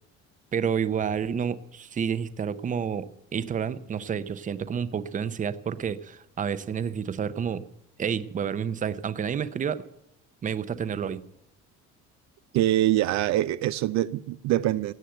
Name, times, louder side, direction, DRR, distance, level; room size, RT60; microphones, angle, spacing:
voice 1, 0.5-7.6 8.0-9.8 10.4-11.2, right 7 dB, 25° right, 0.7 m, -29 dB
voice 2, 12.5-14.9, right 14 dB, 65° right, 0.5 m, -24 dB
17.0 x 9.2 x 7.9 m
cardioid pair, 150°, 29 cm